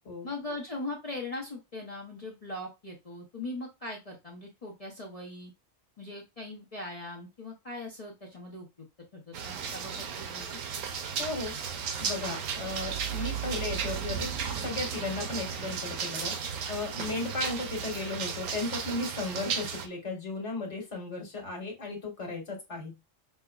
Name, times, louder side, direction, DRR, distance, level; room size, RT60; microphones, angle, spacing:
voice 1, 0.2-5.5 6.0-8.7 9.1-10.6 12.2-12.4 17.0-17.1, left 2 dB, 35° left, -2 dB, 0.7 m, -40 dB
sound 1, 9.3-19.9, right 7 dB, 90° right, 1.0 m, -34 dB
voice 2, 11.2-11.5 12.0-16.3 16.7-23.0, left 3 dB, 65° left, 0 dB, 1.5 m, -35 dB
5.4 x 2.0 x 2.3 m, 0.23 s
omnidirectional pair, 1.3 m